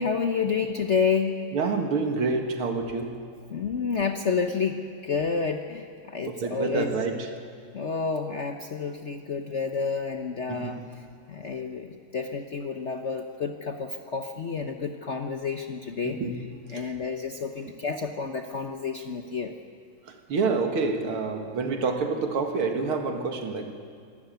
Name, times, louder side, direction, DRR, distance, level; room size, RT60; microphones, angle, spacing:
voice 1, 0.0-1.4 3.5-7.0 7.7-16.2 16.7-19.5, left 5 dB, 55° left, 5 dB, 0.8 m, -29 dB
voice 2, 1.5-3.2 6.3-7.3 10.5-10.8 16.0-16.4 16.7-16.8 20.1-23.7, right 4 dB, 85° right, 4 dB, 2.7 m, -28 dB
24.5 x 12.5 x 9.2 m, 2.2 s
omnidirectional pair, 2.3 m